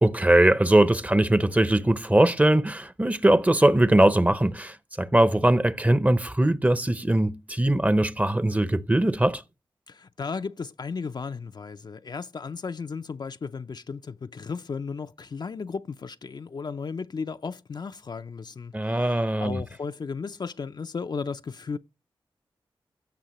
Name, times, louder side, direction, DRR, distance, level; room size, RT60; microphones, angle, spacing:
voice 1, 0.0-9.4 18.7-19.6, right 1 dB, 15° right, 0.7 m, -21 dB
voice 2, 9.9-21.8, left 5 dB, 50° left, 0.4 m, -35 dB
15.5 x 5.5 x 3.0 m
cardioid pair, 50°, 9 cm